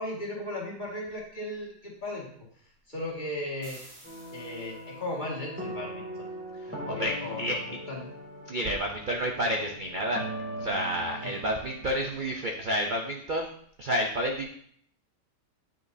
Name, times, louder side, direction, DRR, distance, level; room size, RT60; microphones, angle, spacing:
voice 1, 0.0-2.3 2.9-3.8 4.3-5.9 6.2-6.3 6.7-7.6 7.9-8.0 11.2-11.4, left 1 dB, 25° left, -4 dB, 1.9 m, -36 dB
sound 1, 3.6-5.2, right 1 dB, 35° right, 2.1 m, -52 dB
sound 2, 4.0-12.4, right 1 dB, 5° right, 2.4 m, -40 dB
voice 2, 6.6-7.6 8.5-10.2 10.6-13.5 13.8-14.5, equal, 85° right, 1 dB, 0.4 m, -30 dB
9.2 x 6.5 x 2.7 m, 0.63 s
omnidirectional pair, 1.8 m